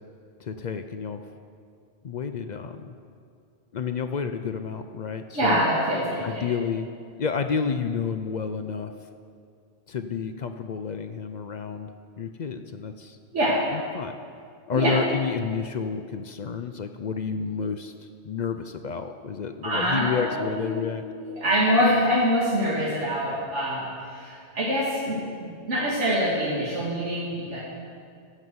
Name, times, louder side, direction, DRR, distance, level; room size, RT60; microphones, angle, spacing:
voice 1, 0.4-1.2 2.0-3.0 3.7-5.6 6.2-6.9 7.2-8.9 9.9-11.9 12.2-13.2 13.7-14.1 14.7-17.9 18.2-21.0, left 6 dB, 55° left, 8 dB, 0.5 m, -30 dB
voice 2, 5.3-6.4 13.3-13.6 14.7-15.0 19.6-20.8 21.1-27.6, equal, 85° right, -7 dB, 2.3 m, -25 dB
14.5 x 5.5 x 7.8 m, 2.3 s
omnidirectional pair, 1.2 m